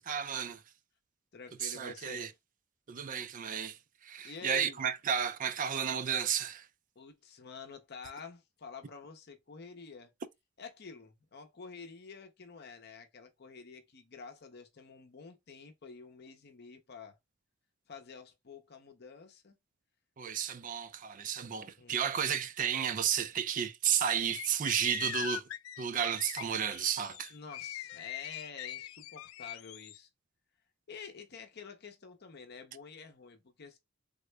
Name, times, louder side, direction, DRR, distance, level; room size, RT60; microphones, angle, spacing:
voice 1, 0.1-0.6 1.6-2.3 2.9-3.8 4.0-6.6 20.2-25.5 25.8-27.3, right 8 dB, 40° right, 0.4 m, -32 dB
voice 2, 1.3-2.3 4.2-4.8 7.0-10.1 10.6-17.2 17.9-19.6 21.8-22.1 27.3-30.1 30.9-33.8, left 5 dB, 55° left, 0.7 m, -49 dB
sound 1, 24.3-30.0, left 12 dB, 85° left, 0.3 m, -42 dB
3.6 x 2.1 x 3.2 m
head